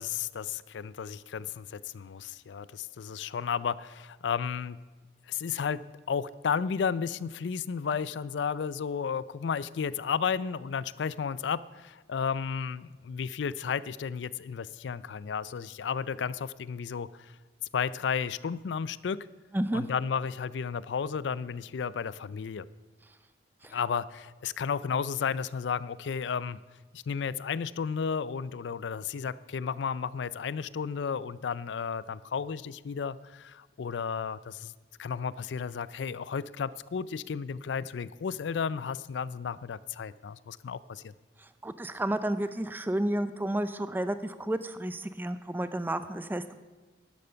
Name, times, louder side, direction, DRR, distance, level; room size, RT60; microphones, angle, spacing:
voice 1, 0.0-4.8 5.3-5.8 6.1-17.3 17.7-19.3 19.7-22.6 23.7-26.6 26.9-34.7 35.0-41.1, left 6 dB, 80° left, 18 dB, 0.4 m, -33 dB
voice 2, 41.4-46.6, right 1 dB, 10° right, 12 dB, 0.4 m, -31 dB
12.0 x 10.5 x 5.6 m, 1.3 s
head